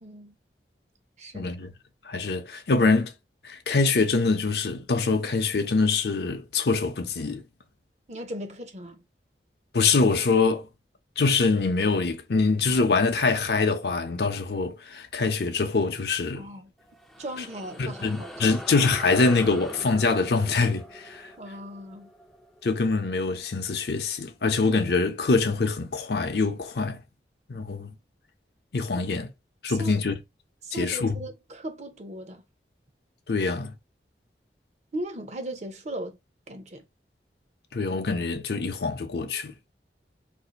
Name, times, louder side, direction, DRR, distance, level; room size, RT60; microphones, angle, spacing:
voice 1, 0.0-0.3 1.2-1.6 8.1-9.0 16.4-16.7 17.2-18.5 21.4-22.1 28.9-29.0 29.8-29.9 30.6-32.4 34.9-36.2 36.5-36.8, right 1 dB, 40° right, 0.6 m, -37 dB
voice 2, 1.3-1.7 2.0-3.1 3.4-7.4 9.7-10.7 11.2-16.5 17.8-21.3 22.6-27.0 27.5-27.9 28.7-29.3 29.6-30.2 30.7-31.2 33.3-33.7 37.7-39.5, left 4 dB, 70° left, 0.6 m, -24 dB
sound 1, 16.8-23.6, equal, ahead, 0.4 m, -43 dB
2.6 x 2.4 x 3.9 m
head